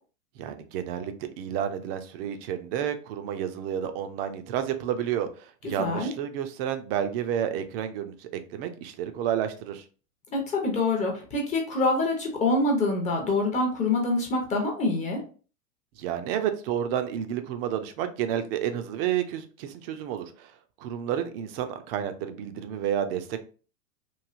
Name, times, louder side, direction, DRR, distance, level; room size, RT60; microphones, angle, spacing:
voice 1, 0.4-9.8 16.0-20.5 20.8-23.4, right 9 dB, 45° right, 0.4 m, -30 dB
voice 2, 5.8-6.1 10.3-15.2, left 2 dB, 15° left, 0.5 m, -25 dB
3.1 x 2.6 x 2.4 m
hypercardioid pair, 120°, 44 cm